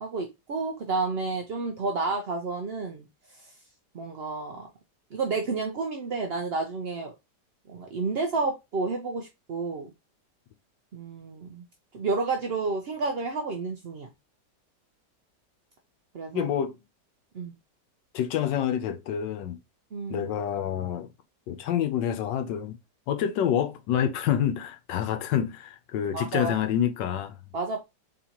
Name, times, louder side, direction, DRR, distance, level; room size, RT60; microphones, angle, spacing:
voice 1, 0.0-3.1 3.4-3.5 3.9-4.7 5.1-7.1 7.7-9.9 10.9-11.6 11.9-14.1 16.1-16.5 17.3-17.5 19.9-20.3 26.1-26.6 27.5-27.8, right 3 dB, 60° right, 0.6 m, -30 dB
voice 2, 16.3-16.8 18.1-19.6 20.1-21.1 21.5-22.8 23.1-27.4, left 9 dB, 85° left, 1.4 m, -27 dB
4.0 x 3.6 x 2.9 m
omnidirectional pair, 1.9 m